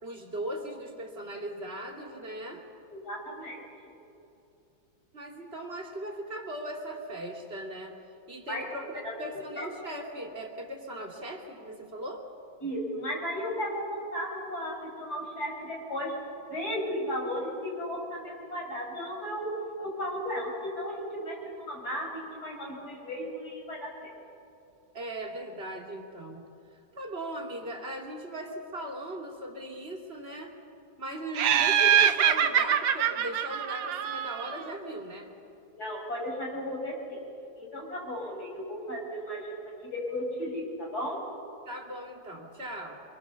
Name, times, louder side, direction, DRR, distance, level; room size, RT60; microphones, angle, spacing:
voice 1, 0.0-2.6 5.1-7.9 8.3-12.2 24.9-26.4 26.9-30.5 31.0-35.3 41.7-43.0, right 1 dB, 30° right, 1 dB, 2.8 m, -38 dB
voice 2, 2.9-3.6 8.5-8.7 9.0-9.1 9.6-9.7 12.6-16.1 16.5-19.5 19.8-24.1 35.7-37.2 37.6-39.6 39.9-41.2, equal, 55° left, -1 dB, 6.0 m, -35 dB
Laughter, 31.4-34.7, right 9 dB, 80° right, 1.7 m, -24 dB
25.0 x 23.5 x 7.0 m, 2.7 s
omnidirectional pair, 2.0 m